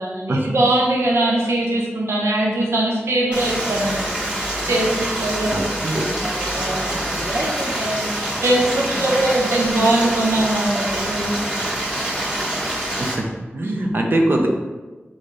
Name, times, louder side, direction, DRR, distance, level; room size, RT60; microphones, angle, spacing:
voice 1, 0.0-5.6 5.9-11.3 13.6-13.9, right 1 dB, 90° right, -3 dB, 0.7 m, -22 dB
Stream, 3.3-13.1, right 1 dB, 20° right, 1.5 m, -25 dB
voice 2, 5.4-6.1 13.2-13.3 13.5-14.5, right 1 dB, 50° right, 2 dB, 0.7 m, -21 dB
4.0 x 3.9 x 3.2 m, 1.2 s
wide cardioid pair, 60°, 4 cm